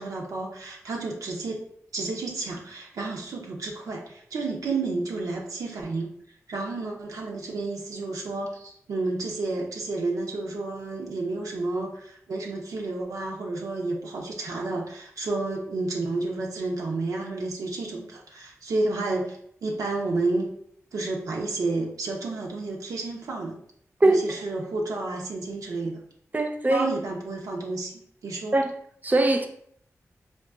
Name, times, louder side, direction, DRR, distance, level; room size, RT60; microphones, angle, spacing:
voice 1, 0.0-1.6 1.9-6.1 6.5-19.4 19.6-20.5 20.9-23.6 24.0-26.0 26.7-28.6, right 3 dB, 85° right, 0.5 m, -31 dB
voice 2, 26.3-26.9 28.5-28.7 29.0-29.5, right 2 dB, 30° right, 0.5 m, -21 dB
3.7 x 2.3 x 2.3 m
cardioid pair, 45°, 6 cm